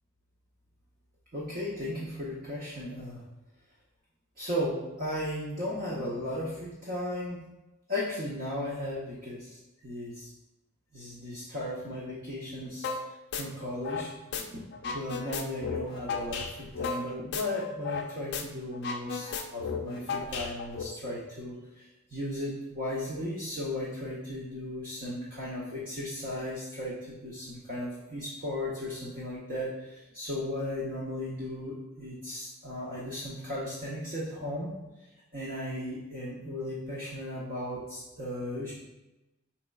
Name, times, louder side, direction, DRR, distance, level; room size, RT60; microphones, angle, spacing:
voice 1, 1.3-3.2 4.4-7.4 7.9-9.6 9.8-10.3 10.9-12.9 13.3-14.1 14.5-14.6 14.9-34.7 35.3-38.7, left 1 dB, 40° right, -6 dB, 0.7 m, -36 dB
sound 1, 12.8-13.0 13.3-14.4 14.7-18.1 18.3-18.4 18.7-20.8, left 5 dB, 50° left, 0.4 m, -34 dB
5.1 x 4.3 x 2.3 m, 1.0 s
head